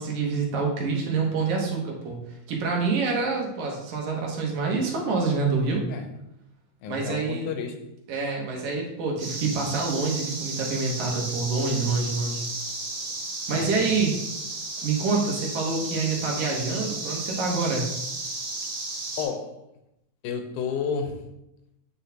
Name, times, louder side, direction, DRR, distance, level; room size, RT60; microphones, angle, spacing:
voice 1, 0.0-2.2 2.5-5.8 6.9-7.5 8.1-12.5 13.5-14.1 14.8-17.9, right 4 dB, 75° right, 2.5 m, -26 dB
voice 2, 6.8-7.8 13.5-14.0 19.2-19.6 20.2-21.3, left 6 dB, 90° left, 2.2 m, -31 dB
sound 1, 9.2-19.2, right 2 dB, 45° right, 2.7 m, -33 dB
9.5 x 4.0 x 2.8 m
omnidirectional pair, 3.5 m